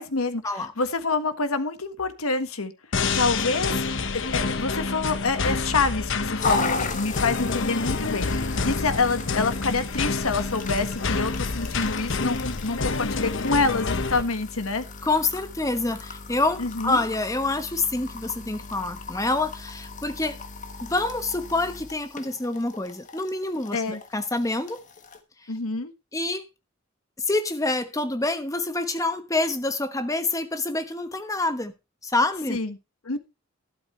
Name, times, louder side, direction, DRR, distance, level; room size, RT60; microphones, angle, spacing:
voice 1, 0.0-2.7 3.1-3.8 4.1-14.8 16.6-17.0 23.7-24.0 25.5-25.9 32.5-32.8 33.0-33.2, left 3 dB, 85° left, 1.5 m, -27 dB
sound 1, 2.9-14.2, left 4 dB, 60° left, 1.0 m, -28 dB
sound 2, 6.4-25.2, left 3 dB, 35° left, 1.4 m, -36 dB
voice 2, 15.0-20.4 20.8-24.8 26.1-26.4 27.3-31.7 32.0-32.6, left 2 dB, 15° left, 1.1 m, -27 dB
12.5 x 11.5 x 3.2 m
head